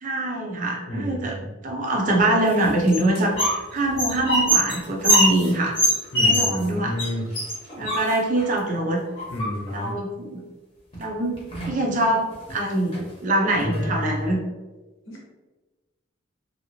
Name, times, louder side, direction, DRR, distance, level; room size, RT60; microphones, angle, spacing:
voice 1, 0.0-1.4 1.6-5.8 6.2-6.9 7.8-9.0 9.7-10.4 11.0-11.4 11.7-14.4, right 1 dB, 40° right, 0 dB, 0.6 m, -24 dB
voice 2, 0.9-1.5 6.1-7.3 9.3-9.9 15.1-15.3, left 1 dB, 80° left, -2 dB, 1.1 m, -31 dB
sound 1, 2.5-3.6 3.9-6.7 7.0-7.1 7.3-8.5 9.2-9.8 10.9-11.0 11.3-11.8 12.3-12.5 12.9-13.0 13.5-14.3, equal, 30° left, 0.9 m, -23 dB
3.1 x 2.8 x 2.9 m, 1.2 s
head